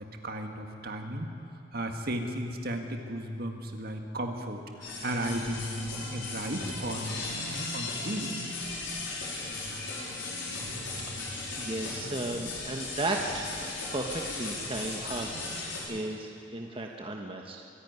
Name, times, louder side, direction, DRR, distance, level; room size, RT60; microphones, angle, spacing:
voice 1, 0.0-1.3 1.7-8.3, right 1 dB, 55° right, 4 dB, 1.8 m, -35 dB
sound 1, 4.8-15.8, left 3 dB, 90° left, 5.1 m, -37 dB
voice 2, 11.6-17.6, right 2 dB, 30° right, 1 dB, 1.3 m, -35 dB
25.0 x 11.0 x 9.6 m, 2.5 s
head